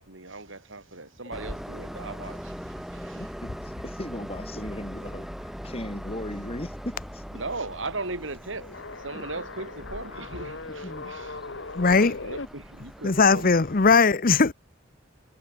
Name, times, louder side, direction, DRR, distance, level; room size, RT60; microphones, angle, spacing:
voice 1, 0.0-3.3 7.3-11.4 11.8-13.6, right 3 dB, 75° right, 4.4 m, -38 dB
Train, 1.3-13.9, equal, ahead, 1.1 m, -41 dB
voice 2, 3.0-7.2 9.1-9.3 10.7-11.1, left 1 dB, 30° left, 2.6 m, -38 dB
sound 1, 8.6-12.5, left 3 dB, 65° left, 1.4 m, -39 dB
voice 3, 11.7-12.2 13.0-14.5, left 4 dB, 45° left, 0.8 m, -19 dB
head